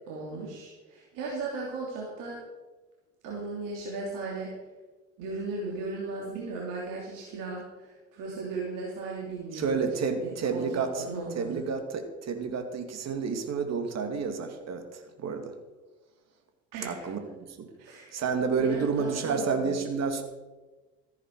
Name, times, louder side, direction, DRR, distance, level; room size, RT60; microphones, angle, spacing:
voice 1, 0.1-2.4 3.2-4.5 5.2-9.8 10.2-11.6 16.7-17.1 17.8-18.2 18.6-19.8, right 3 dB, 65° right, -3 dB, 3.3 m, -36 dB
voice 2, 9.5-11.1 11.4-15.5 16.8-17.7 18.1-20.2, right 5 dB, 45° right, 6 dB, 2.4 m, -30 dB
14.5 x 10.5 x 4.8 m, 1.2 s
hypercardioid pair, 65°, 35 cm